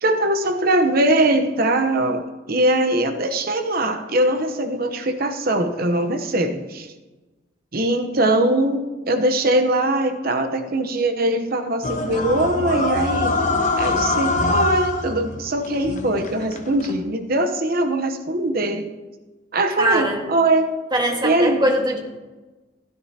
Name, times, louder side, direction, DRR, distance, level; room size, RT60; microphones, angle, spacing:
voice 1, 0.0-2.2 2.5-6.9 7.7-13.4 13.8-18.9 19.5-20.7 21.2-21.6, right 1 dB, 55° right, 7 dB, 1.0 m, -21 dB
sound 1, 11.8-17.0, left 3 dB, 45° left, 1.1 m, -24 dB
voice 2, 19.8-20.2 20.9-22.0, right 1 dB, 25° right, 1 dB, 1.7 m, -21 dB
16.0 x 10.5 x 2.9 m, 1.2 s
head